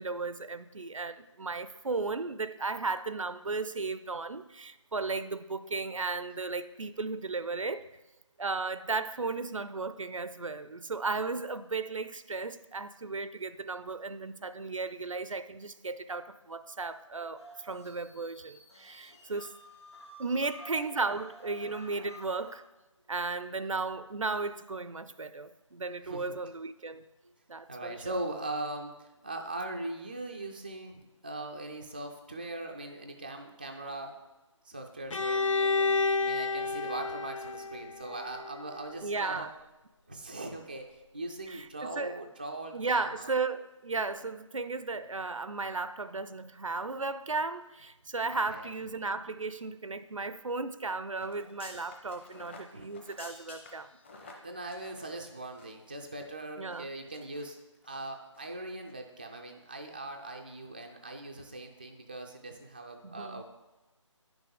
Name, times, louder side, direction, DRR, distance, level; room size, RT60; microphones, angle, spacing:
voice 1, 0.0-7.9 8.4-19.5 20.2-22.6 23.1-27.0 27.5-28.1 39.0-39.5 41.5-42.2 42.7-53.9 56.6-56.9 63.0-63.4, right 3 dB, 80° right, 0.5 m, -35 dB
sound 1, 17.4-22.6, equal, 60° left, 1.7 m, -51 dB
voice 2, 26.0-26.4 27.7-34.2 34.6-39.5 40.1-40.9 41.1-43.3 48.3-48.7 52.7-52.9 54.4-57.6 57.8-63.4, right 2 dB, 20° right, 0.3 m, -40 dB
Bowed string instrument, 35.1-38.9, left 4 dB, 80° left, 0.5 m, -30 dB
sound 2, 51.2-55.9 56.1-56.3 56.7-57.4 57.8-58.0 58.3-58.5 58.8-58.9, left 3 dB, 20° left, 0.8 m, -51 dB
9.9 x 6.0 x 3.8 m
figure-of-eight pair, 155°, 16 cm